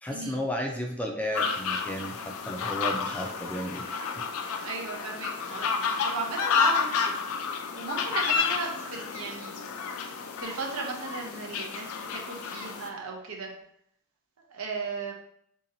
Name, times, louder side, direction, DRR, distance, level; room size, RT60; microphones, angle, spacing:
voice 1, 0.0-3.8 4.2-4.3, equal, 5° left, 1 dB, 0.4 m, -33 dB
sound 1, 1.3-12.9, left 5 dB, 85° left, 0.4 m, -30 dB
voice 2, 4.6-7.2 7.5-9.7 10.1-13.5 14.5-15.1, right 3 dB, 85° right, 0 dB, 0.8 m, -36 dB
3.8 x 2.8 x 2.6 m, 0.70 s
head